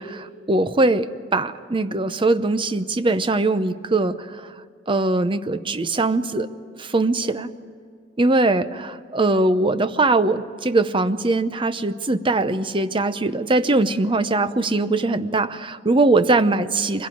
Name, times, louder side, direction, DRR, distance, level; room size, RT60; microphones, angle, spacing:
voice 1, 0.0-4.5 4.9-6.5 6.8-7.5 8.2-17.1, right 2 dB, 30° right, 12 dB, 0.7 m, -21 dB
23.5 x 16.5 x 9.2 m, 2.2 s
head